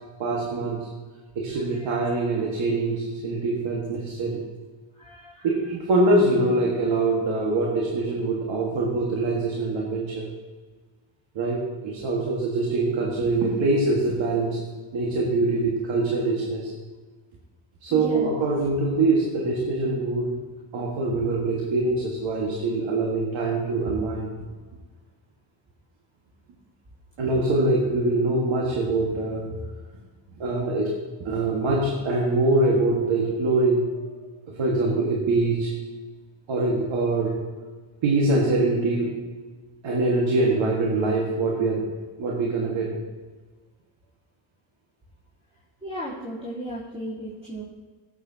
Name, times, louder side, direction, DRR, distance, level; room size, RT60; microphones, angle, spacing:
voice 1, 0.2-0.9 1.4-4.4 5.4-10.3 11.4-14.6 14.9-16.7 17.8-20.4 20.7-24.3 27.2-29.5 30.4-30.9 31.3-33.9 34.6-35.7 36.5-37.4 38.0-39.2 39.8-41.9 42.2-42.9, right 2 dB, 75° right, -2 dB, 2.0 m, -24 dB
voice 2, 1.5-2.2 5.0-5.5 17.9-18.4 20.3-20.5 45.8-47.6, right 1 dB, 15° right, -9 dB, 3.5 m, -36 dB
17.5 x 8.2 x 2.9 m, 1.4 s
cardioid pair, 105°, 46 cm